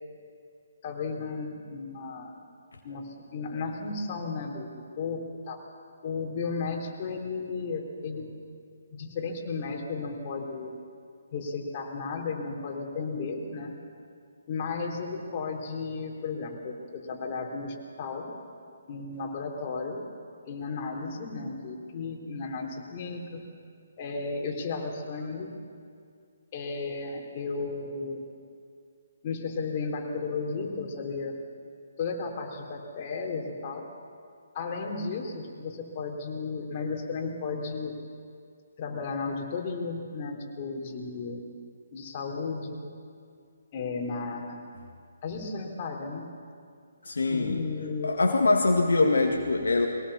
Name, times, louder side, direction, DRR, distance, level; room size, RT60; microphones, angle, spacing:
voice 1, 0.8-2.3 2.8-4.7 5.0-5.6 6.0-8.3 8.9-10.7 11.3-13.7 14.5-18.3 18.9-20.0 20.4-23.4 24.0-25.5 26.5-28.2 29.2-31.3 32.0-33.8 34.5-38.0 38.8-41.4 41.9-42.8 43.7-44.6 45.2-46.3 47.3-48.2, left 4 dB, 35° left, 0 dB, 3.7 m, -34 dB
voice 2, 47.0-47.6 48.0-49.9, left 3 dB, 70° left, 1 dB, 2.0 m, -23 dB
22.0 x 19.0 x 7.1 m, 2.3 s
figure-of-eight pair, 140°, 0 cm